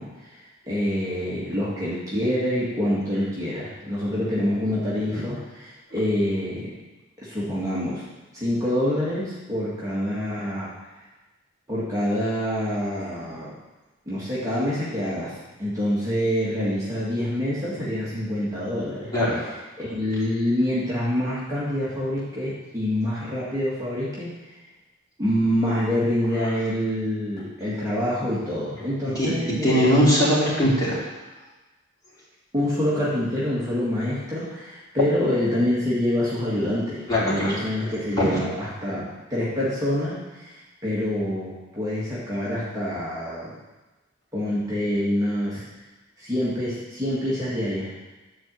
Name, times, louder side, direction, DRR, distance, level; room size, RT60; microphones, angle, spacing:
voice 1, 0.0-6.8 7.2-8.0 8.3-10.7 11.7-13.5 14.1-19.1 19.8-24.3 25.2-29.9 32.5-40.5 40.8-43.5 44.3-45.6 46.2-47.9, left 1 dB, 15° right, -9 dB, 1.9 m, -26 dB
voice 2, 29.6-31.0 37.1-37.6 38.2-38.4, equal, 20° left, -8 dB, 3.3 m, -20 dB
10.0 x 4.5 x 7.6 m, 1.1 s
head